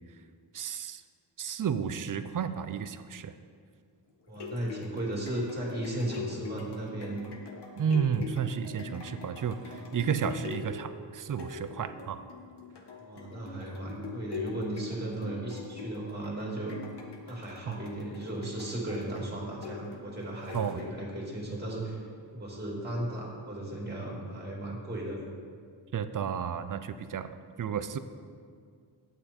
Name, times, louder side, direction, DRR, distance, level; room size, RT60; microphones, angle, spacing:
voice 1, 0.5-1.0 1.4-3.3 7.8-12.2 17.7-17.8 20.5-20.8 25.9-28.0, right 7 dB, 45° right, 11 dB, 0.5 m, -32 dB
sound 1, 4.1-21.2 21.7-21.8, left 3 dB, 60° left, 1.4 m, -43 dB
voice 2, 4.3-7.3 13.0-16.8 17.3-22.0 22.3-25.2, right 1 dB, 20° right, -3 dB, 2.7 m, -36 dB
10.0 x 8.9 x 4.3 m, 2.1 s
wide cardioid pair, 120°, 47 cm